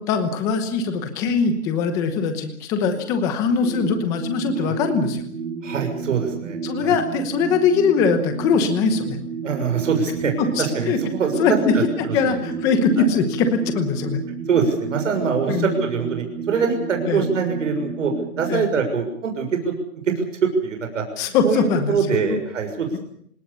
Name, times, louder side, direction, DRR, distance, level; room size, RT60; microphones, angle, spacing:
voice 1, 0.1-5.2 6.6-9.2 10.4-11.0 11.4-14.2 15.5-15.7 17.1-17.3 18.5-18.7 21.2-22.0 22.3-22.4, left 5 dB, 5° left, 8 dB, 1.0 m, -21 dB
sound 1, 3.6-18.5, right 5 dB, 80° right, 6.2 m, -31 dB
voice 2, 5.6-6.9 9.4-10.3 10.6-11.8 12.2-12.4 13.0-13.1 14.5-18.1 18.4-19.7 20.0-20.2 20.6-23.0, right 5 dB, 55° right, 4 dB, 6.7 m, -24 dB
28.0 x 18.5 x 6.9 m, 0.66 s
hypercardioid pair, 170°, 45 cm